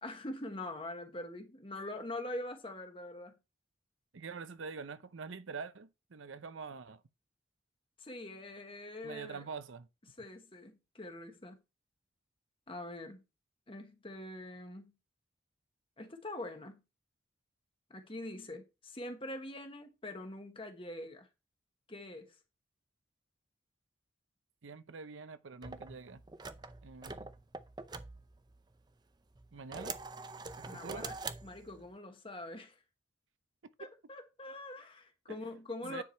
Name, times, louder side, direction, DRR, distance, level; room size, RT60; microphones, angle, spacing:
voice 1, 0.0-3.3 8.0-9.4 10.2-11.6 12.7-13.2 13.7-14.9 16.0-16.8 17.9-21.3 21.9-22.3 30.7-31.1 31.4-32.8 33.8-36.0, left 1 dB, 25° left, 1.2 m, -44 dB
voice 2, 4.1-7.0 9.0-9.9 24.6-26.2 26.8-27.3 29.5-30.0 30.6-31.1 33.8-33.9 35.3-35.4 35.8-36.0, right 5 dB, 75° right, 0.7 m, -45 dB
sound 1, 25.6-28.9 29.4-31.9, right 4 dB, 20° right, 0.5 m, -45 dB
9.7 x 4.8 x 4.4 m
head